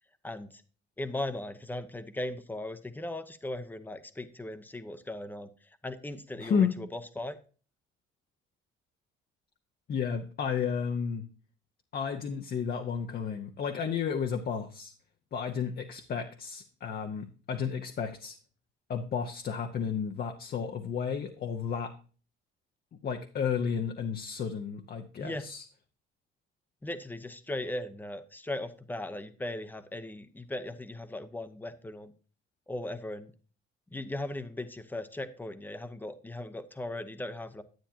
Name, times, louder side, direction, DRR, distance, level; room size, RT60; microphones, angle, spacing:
voice 1, 0.2-0.6 1.0-7.4 25.2-25.5 26.8-32.1 32.7-33.3 33.9-37.6, left 1 dB, 10° left, 10 dB, 0.8 m, -38 dB
voice 2, 6.4-6.7 9.9-11.3 11.9-14.9 15.3-18.4 18.9-21.9 23.0-25.6, left 6 dB, 45° left, 5 dB, 0.9 m, -32 dB
10.5 x 8.8 x 2.8 m, 0.38 s
cardioid pair, 115°, 21 cm